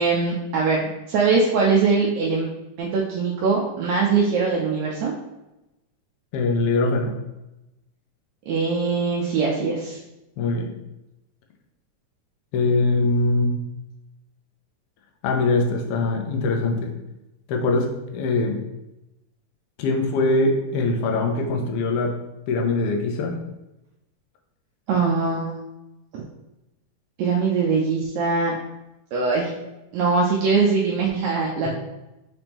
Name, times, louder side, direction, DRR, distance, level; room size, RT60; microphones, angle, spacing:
voice 1, 0.0-2.5 2.8-5.1 8.5-10.0 24.9-25.5 26.1-26.2 27.2-28.6 29.1-29.5 29.9-31.7, right 4 dB, 80° right, -2 dB, 1.8 m, -22 dB
voice 2, 6.3-7.2 10.4-10.8 12.5-13.6 15.2-16.9 17.5-18.6 19.8-22.2 22.5-23.4, left 3 dB, 80° left, 2 dB, 1.3 m, -22 dB
5.1 x 3.5 x 2.9 m, 0.96 s
omnidirectional pair, 3.4 m